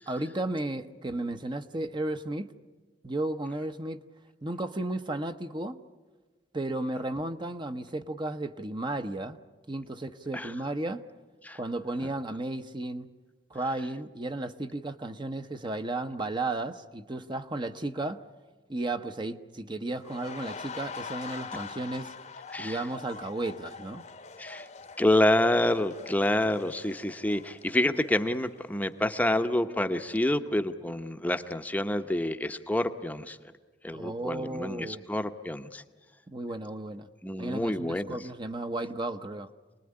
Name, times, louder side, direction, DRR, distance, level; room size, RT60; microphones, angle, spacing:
voice 1, 0.1-2.5 3.0-4.0 4.4-5.8 6.5-9.4 9.7-11.0 11.5-13.1 13.5-18.2 18.7-22.1 22.6-24.1 33.9-35.0 36.3-37.1 37.4-39.5, right 2 dB, 25° right, 8 dB, 0.8 m, -34 dB
sound 1, 20.0-28.8 29.2-29.4, left 5 dB, 40° left, 1.0 m, -44 dB
voice 2, 22.5-22.8 24.4-24.7 25.0-33.4 33.8-35.8 37.2-38.2, left 1 dB, 10° left, 8 dB, 0.8 m, -28 dB
27.5 x 20.0 x 9.7 m, 1.3 s
head